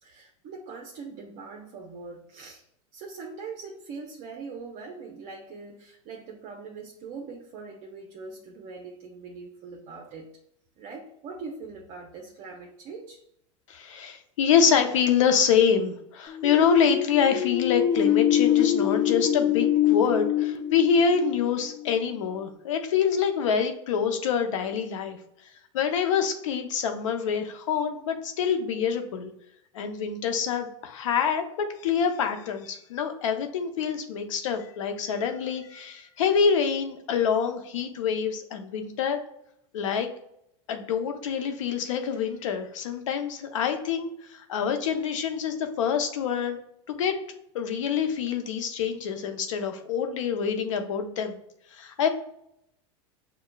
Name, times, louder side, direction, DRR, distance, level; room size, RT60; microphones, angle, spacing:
voice 1, 0.0-2.6 2.9-10.4 10.8-13.2, right 4 dB, 45° right, 0 dB, 0.7 m, -42 dB
voice 2, 13.7-25.2 25.7-29.3 29.7-39.2 39.7-40.1 40.7-46.6 46.9-47.1 47.5-51.3 51.7-52.1, left 7 dB, 85° left, 6 dB, 0.7 m, -26 dB
sound 1, 16.3-21.9, left 11 dB, 25° left, 0.5 m, -25 dB
6.6 x 2.3 x 2.2 m, 0.74 s
supercardioid pair, 115°, 16 cm